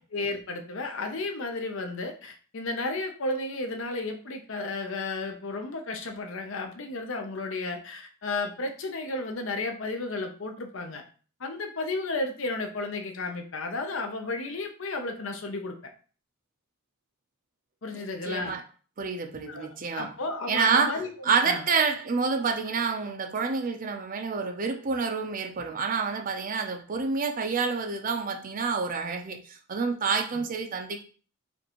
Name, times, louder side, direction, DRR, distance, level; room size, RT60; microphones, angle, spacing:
voice 1, 0.1-11.0 11.4-15.9 17.8-18.6 19.5-19.7 19.9-21.1 21.4-21.7 30.3-30.4, left 2 dB, 60° left, 5 dB, 0.7 m, -33 dB
voice 2, 17.9-18.6 19.0-20.1 20.5-31.0, right 5 dB, 40° right, 4 dB, 0.5 m, -28 dB
5.1 x 2.6 x 3.0 m, 0.39 s
head